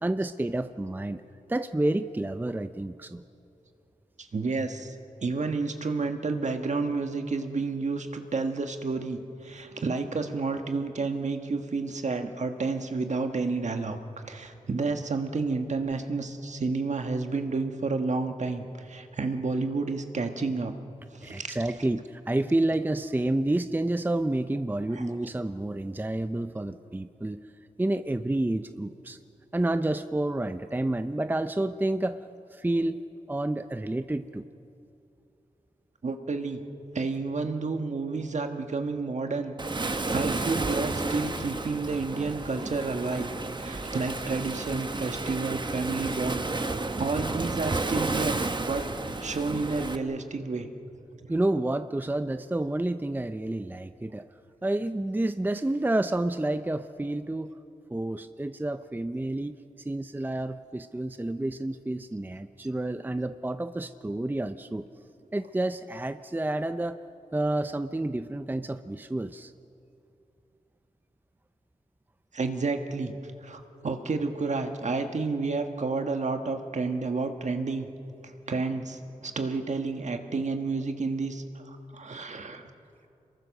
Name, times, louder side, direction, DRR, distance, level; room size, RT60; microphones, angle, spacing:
voice 1, 0.0-1.2 1.5-3.2 21.2-27.4 27.8-29.2 29.5-32.2 32.5-33.0 33.3-34.5 51.3-54.3 54.6-57.5 57.9-64.9 65.3-67.0 67.3-69.5, right 1 dB, 15° right, 10 dB, 0.6 m, -29 dB
voice 2, 4.3-14.0 14.3-20.7 21.1-21.6 36.0-36.6 36.9-43.3 43.6-50.7 72.3-73.1 73.4-77.9 78.2-82.7, right 3 dB, 60° right, 6 dB, 1.6 m, -30 dB
Waves surf, 39.6-50.0, right 3 dB, 35° right, 1.2 m, -32 dB
27.5 x 22.0 x 6.6 m, 2.7 s
wide cardioid pair, 80°, 14 cm